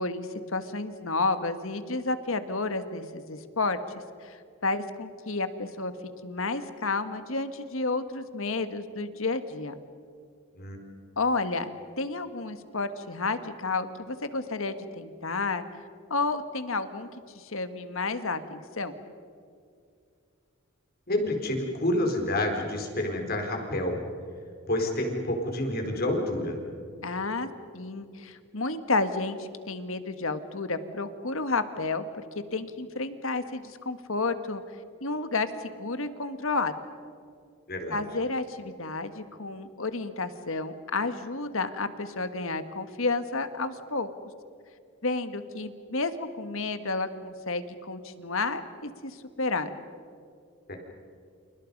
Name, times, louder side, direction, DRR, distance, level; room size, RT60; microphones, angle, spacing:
voice 1, 0.0-3.8 4.2-5.9 6.2-9.8 11.2-11.7 12.0-15.6 16.1-17.1 17.3-18.9 27.0-27.5 27.7-32.0 32.5-34.6 35.0-36.7 37.9-44.1 45.0-49.7, left 3 dB, 65° left, 10 dB, 1.6 m, -31 dB
voice 2, 10.5-10.9 21.1-24.0 24.7-26.6 37.7-38.0 50.7-50.8, left 1 dB, 45° left, 3 dB, 4.4 m, -28 dB
29.5 x 28.5 x 5.4 m, 2.3 s
head